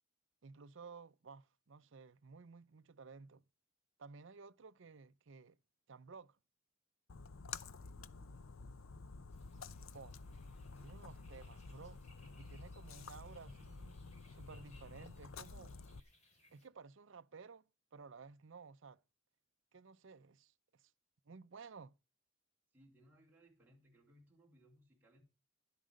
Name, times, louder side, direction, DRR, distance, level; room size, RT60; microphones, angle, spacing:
voice 1, 0.4-3.4 4.0-5.6 5.9-6.4 9.9-10.2 10.8-12.0 12.4-14.0 14.4-15.7 16.5-17.6 17.9-19.0 19.7-20.9 21.3-22.0, right 4 dB, 65° right, 0.6 m, -55 dB
Splash splatter, 7.1-16.0, left 4 dB, 75° left, 0.7 m, -51 dB
voice 2, 7.8-8.9 22.7-25.2, equal, 10° right, 3.6 m, -67 dB
sound 1, 9.3-16.7, left 2 dB, 30° left, 3.9 m, -69 dB
11.5 x 11.5 x 5.2 m
head